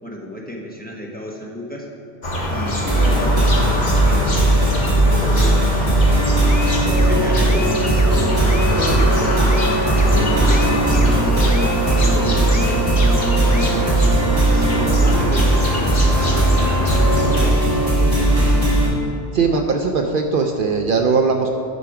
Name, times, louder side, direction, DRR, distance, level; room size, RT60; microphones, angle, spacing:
voice 1, 0.0-1.9 2.5-6.5 6.9-14.1 14.5-17.6, left 1 dB, 10° left, -2 dB, 1.1 m, -31 dB
sound 1, 2.2-17.5, left 1 dB, 45° left, 1.4 m, -24 dB
sound 2, 2.9-18.9, right 1 dB, 20° right, 2.3 m, -17 dB
sound 3, 6.5-13.7, left 3 dB, 25° left, 0.4 m, -34 dB
voice 2, 19.3-21.5, right 4 dB, 60° right, 4 dB, 0.7 m, -19 dB
11.0 x 5.8 x 4.8 m, 2.6 s
omnidirectional pair, 1.1 m